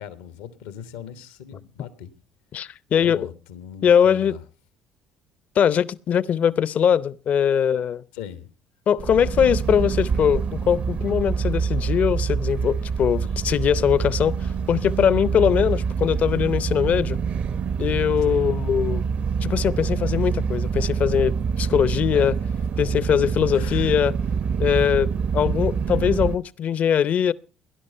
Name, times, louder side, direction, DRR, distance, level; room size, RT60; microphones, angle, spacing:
voice 1, 0.0-2.1 3.0-4.4 8.1-8.5 18.2-18.5 22.1-22.4 23.5-24.0, left 9 dB, 90° left, 1.3 m, -39 dB
voice 2, 2.5-3.3 3.8-4.3 5.6-8.0 8.9-17.2 17.8-19.0 19.4-22.4 22.8-24.1 24.6-27.3, left 8 dB, 55° left, 0.7 m, -21 dB
sound 1, 9.0-26.4, right 6 dB, 50° right, 0.8 m, -26 dB
17.5 x 11.0 x 5.5 m
supercardioid pair, 75°, 3 cm